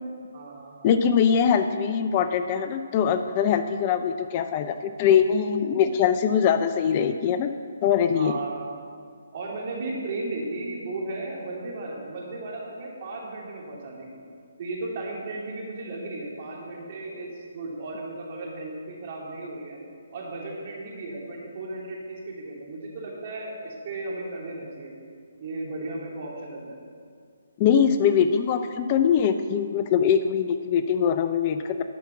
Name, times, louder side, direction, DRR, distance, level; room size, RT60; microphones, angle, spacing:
voice 1, 0.3-0.9 8.1-8.6 9.3-14.2 14.6-19.8 20.1-24.9 25.4-26.8, right 2 dB, 45° right, -3 dB, 2.7 m, -35 dB
voice 2, 0.8-7.5 7.8-8.3 27.6-31.8, left 7 dB, 30° left, 9 dB, 0.4 m, -22 dB
11.0 x 5.8 x 7.2 m, 2.2 s
figure-of-eight pair, 145°, 0 cm